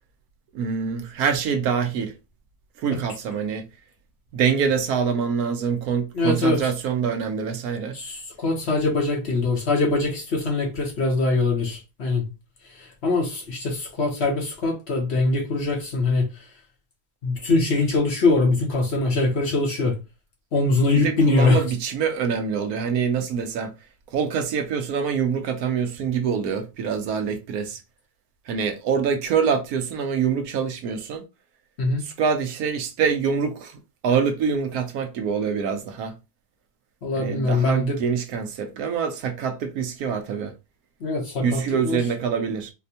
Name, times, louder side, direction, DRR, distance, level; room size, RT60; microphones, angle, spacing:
voice 1, 0.5-2.1 2.8-3.6 4.3-8.0 21.0-23.7 24.1-27.8 28.5-31.2 32.0-33.8 34.0-36.1 37.1-40.5 41.4-42.7, right 6 dB, 75° right, 1.1 m, -25 dB
voice 2, 6.1-6.7 7.9-12.2 12.8-16.4 17.2-19.9 20.5-21.6 31.8-32.0 37.0-38.0 41.0-42.0, left 2 dB, 50° left, 1.0 m, -22 dB
4.2 x 2.1 x 2.7 m
omnidirectional pair, 1.6 m